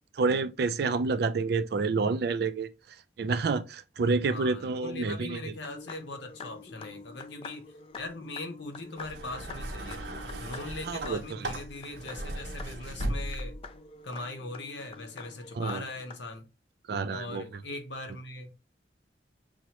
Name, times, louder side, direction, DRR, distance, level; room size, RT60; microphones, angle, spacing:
voice 1, 0.2-2.7 3.2-5.4 10.9-11.2 15.6-15.8 16.9-17.4, right 4 dB, 60° right, 0.4 m, -28 dB
voice 2, 4.3-7.6 8.0-10.0 10.4-13.6 14.0-16.5 17.1-18.5, left 2 dB, 80° left, 0.9 m, -40 dB
sound 1, 5.5-16.2, left 4 dB, 30° left, 0.3 m, -47 dB
sound 2, 8.9-13.7 14.7-14.8, right 1 dB, 80° right, 0.8 m, -37 dB
6.0 x 2.1 x 2.9 m
head